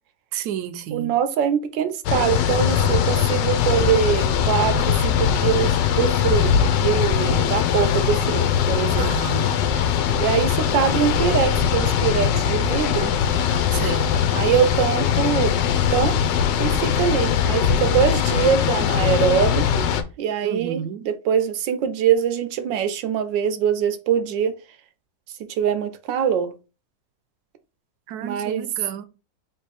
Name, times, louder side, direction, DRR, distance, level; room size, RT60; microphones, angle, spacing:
voice 1, 0.3-1.1 9.0-9.5 13.7-14.1 20.4-21.0 28.1-29.1, right 9 dB, 70° right, 1.0 m, -31 dB
voice 2, 0.9-9.1 10.2-13.1 14.3-15.6 15.9-16.2 16.6-19.8 20.2-24.6 25.6-26.5 28.2-28.7, right 8 dB, 90° right, 1.3 m, -23 dB
sound 1, 2.0-20.0, left 8 dB, 85° left, 1.3 m, -21 dB
3.4 x 3.0 x 4.7 m
omnidirectional pair, 1.9 m